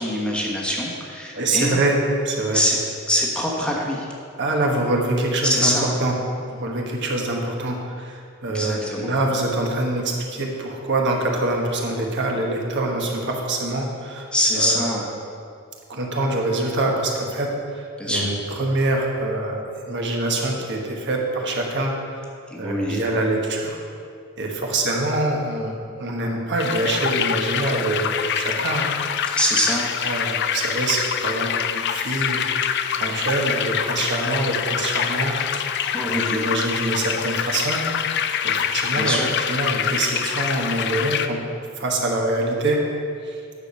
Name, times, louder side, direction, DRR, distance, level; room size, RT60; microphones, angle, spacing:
voice 1, 0.0-1.8 2.5-2.8 3.1-4.1 5.4-5.9 8.5-9.1 14.3-15.1 18.0-18.3 22.5-23.0 29.3-29.9 35.8-36.4 38.9-39.3, equal, 5° left, -3 dB, 1.2 m, -23 dB
voice 2, 1.3-2.6 4.4-6.1 6.5-14.3 14.5-15.0 15.9-22.3 22.6-23.8 24.4-28.9 29.2-29.3 30.0-32.4 32.9-35.7 36.0-37.8 38.4-39.2 39.5-41.4 41.8-42.8 43.2-43.4, right 2 dB, 55° right, 0 dB, 1.3 m, -25 dB
sound 1, 26.6-41.3, left 8 dB, 55° left, 0.4 m, -25 dB
9.5 x 4.9 x 6.8 m, 2.3 s
head